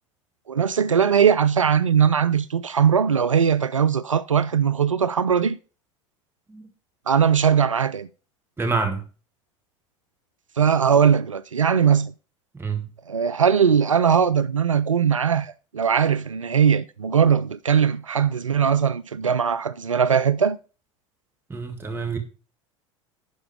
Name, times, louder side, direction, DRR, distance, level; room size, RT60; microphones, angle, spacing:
voice 1, 0.5-5.6 7.1-8.1 10.6-12.1 13.1-20.6, right 7 dB, 90° right, 0.4 m, -20 dB
voice 2, 8.6-9.0 12.5-12.9 21.5-22.2, right 4 dB, 15° right, 2.2 m, -27 dB
11.5 x 4.9 x 4.9 m
figure-of-eight pair, 75°, 16 cm